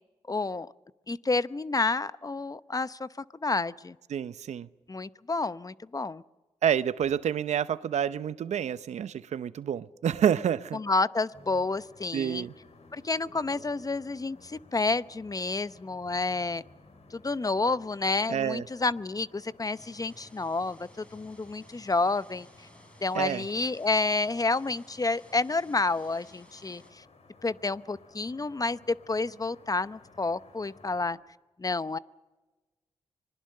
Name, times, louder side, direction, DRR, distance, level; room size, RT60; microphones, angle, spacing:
voice 1, 0.3-0.7 1.1-4.0 4.9-6.2 10.7-12.5 12.9-16.6 17.1-22.5 23.0-27.0 27.4-31.2 31.6-32.0, left 3 dB, 30° left, 15 dB, 0.8 m, -29 dB
voice 2, 4.1-4.7 6.6-10.8 12.1-12.5 18.3-18.6 23.1-23.4, right 9 dB, 80° right, 15 dB, 0.7 m, -28 dB
sound 1, 11.3-31.2, left 3 dB, 70° left, 4.3 m, -56 dB
sound 2, 19.7-26.9, equal, 10° left, 5.8 m, -56 dB
25.5 x 20.5 x 6.6 m, 1.2 s
supercardioid pair, 45°, 12 cm